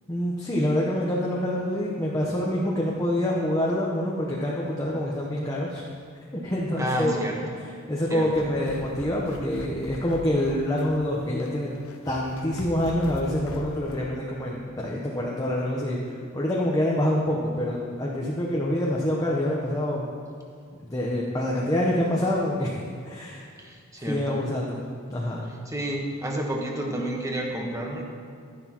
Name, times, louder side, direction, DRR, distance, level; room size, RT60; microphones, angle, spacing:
voice 1, 0.1-5.8 6.3-7.3 7.9-11.7 12.1-20.0 20.8-22.7 23.0-23.5 24.1-24.8 25.1-25.4, left 1 dB, 15° left, -4 dB, 0.9 m, -26 dB
voice 2, 6.8-7.6 8.1-8.3 23.6-24.4 25.7-28.0, right 1 dB, 15° right, 0 dB, 1.2 m, -30 dB
sound 1, 8.0-14.1, left 2 dB, 90° left, 0.7 m, -41 dB
12.0 x 11.0 x 3.0 m, 2.2 s
head